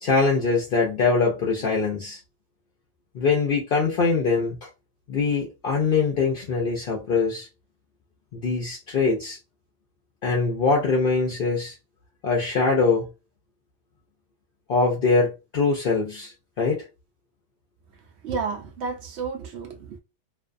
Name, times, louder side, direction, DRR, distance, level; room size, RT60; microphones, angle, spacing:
voice 1, 0.0-2.2 3.1-4.6 5.1-7.5 8.3-9.4 10.2-11.8 12.2-13.1 14.7-16.8, left 4 dB, 55° left, 0.6 m, -23 dB
voice 2, 18.2-20.0, right 5 dB, 70° right, 0.8 m, -31 dB
2.5 x 2.3 x 2.4 m
omnidirectional pair, 1.3 m